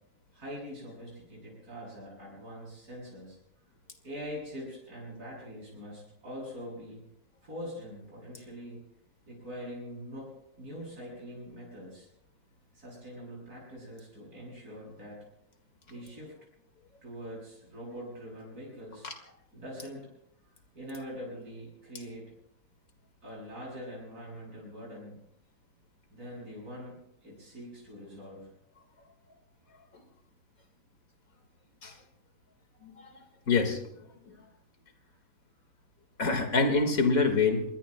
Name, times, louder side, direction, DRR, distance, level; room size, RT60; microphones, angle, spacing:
voice 1, 0.3-3.4 4.0-7.0 7.4-8.8 9.3-10.3 10.6-12.1 12.7-15.3 15.9-16.3 17.0-19.1 19.5-20.1 20.7-22.3 23.2-25.3 26.1-28.5 34.3-34.4 35.0-35.1, equal, 85° right, -5 dB, 8.2 m, -43 dB
voice 2, 33.5-33.8 36.2-37.6, left 4 dB, 65° left, 5 dB, 2.3 m, -25 dB
27.0 x 21.5 x 2.2 m, 0.77 s
omnidirectional pair, 1.6 m